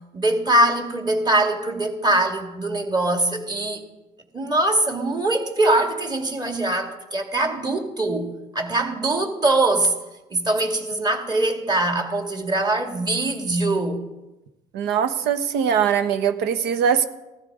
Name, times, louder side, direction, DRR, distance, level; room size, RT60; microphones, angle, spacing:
voice 1, 0.1-3.8 4.3-8.3 8.5-9.9 10.3-14.0, right 2 dB, 25° right, 2.4 m, -22 dB
voice 2, 14.7-17.0, right 7 dB, 85° right, 1.1 m, -21 dB
15.0 x 14.5 x 4.9 m
cardioid pair, 110°, 17 cm